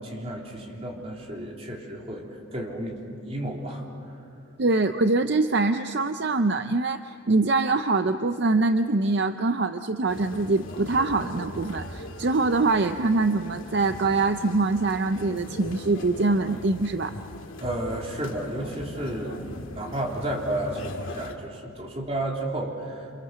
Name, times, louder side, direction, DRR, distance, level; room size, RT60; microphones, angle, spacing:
voice 1, 0.0-3.8 17.6-23.1, right 1 dB, 30° right, -1 dB, 3.7 m, -32 dB
voice 2, 4.6-17.2, right 3 dB, 55° right, 9 dB, 0.6 m, -24 dB
sound 1, 10.1-21.3, left 1 dB, 85° left, 2.1 m, -39 dB
29.0 x 27.5 x 6.9 m, 2.5 s
head